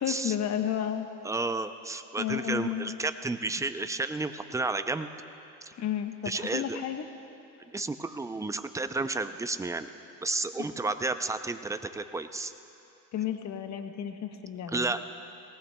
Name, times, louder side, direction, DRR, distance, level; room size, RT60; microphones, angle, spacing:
voice 1, 0.0-1.1 2.2-2.9 5.8-7.1 13.1-15.0, left 10 dB, 50° left, 6 dB, 1.0 m, -32 dB
voice 2, 1.2-5.1 5.6-5.7 6.3-6.8 7.6-9.9 10.2-12.5 14.7-15.0, right 3 dB, 10° right, 10 dB, 0.4 m, -32 dB
18.5 x 18.0 x 2.2 m, 2.8 s
cardioid pair, 100°, 35 cm